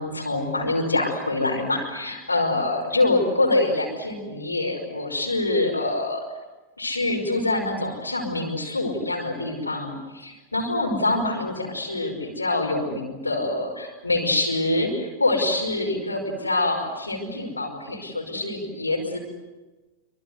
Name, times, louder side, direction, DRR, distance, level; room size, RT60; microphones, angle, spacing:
voice 1, 0.0-6.2 6.8-19.2, left 2 dB, 80° left, 0 dB, 5.5 m, -25 dB
26.0 x 25.5 x 8.1 m, 1.2 s
figure-of-eight pair, 90°, 0 cm